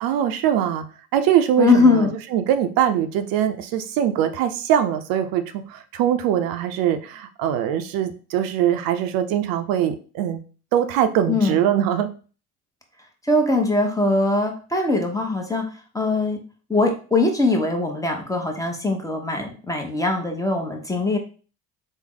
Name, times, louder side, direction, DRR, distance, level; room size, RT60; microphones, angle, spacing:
voice 1, 0.0-0.8 1.1-10.4 10.7-12.1, right 10 dB, 70° right, 9 dB, 0.5 m, -22 dB
voice 2, 1.6-2.1 11.3-11.6 13.2-15.7 15.9-16.4 16.7-21.2, left 2 dB, 10° left, 3 dB, 0.8 m, -21 dB
3.5 x 2.1 x 3.7 m, 0.37 s
supercardioid pair, 85°, 37 cm